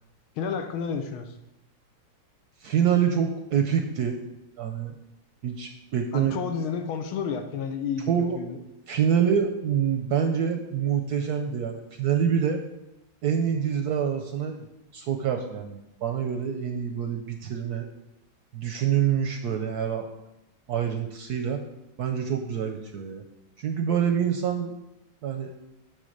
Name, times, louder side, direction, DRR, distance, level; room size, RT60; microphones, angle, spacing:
voice 1, 0.4-1.4 6.1-8.6, left 6 dB, 85° left, 7 dB, 1.7 m, -31 dB
voice 2, 2.6-4.2 4.6-4.9 5.4-6.4 8.1-8.4 8.9-12.6 13.2-14.6 14.9-17.9 18.5-20.1 20.7-21.6 22.0-23.2 23.6-24.7 25.2-25.5, right 8 dB, 70° right, 5 dB, 1.0 m, -26 dB
9.4 x 3.9 x 6.5 m, 0.92 s
omnidirectional pair, 2.2 m